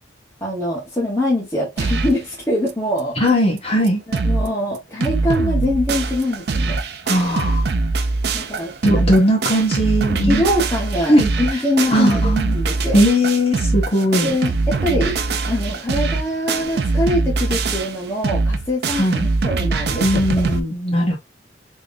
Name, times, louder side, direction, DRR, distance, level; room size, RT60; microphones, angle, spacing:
voice 1, 0.4-3.2 4.1-6.8 8.3-8.7 10.3-13.0 14.2-15.2 15.5-19.1 19.4-20.0 20.3-20.6, left 1 dB, 15° left, 1.0 m, -23 dB
sound 1, 1.8-2.2 2.7-2.8 3.0-3.1 3.6-3.7 3.9-4.5 4.7-20.6, right 3 dB, 60° right, 0.5 m, -22 dB
voice 2, 3.2-4.0 7.1-7.6 8.8-10.4 11.1-11.3 11.9-12.6 12.9-14.3 19.0-19.3 20.0-21.2, equal, 30° left, 1.4 m, -18 dB
3.6 x 3.0 x 2.5 m
head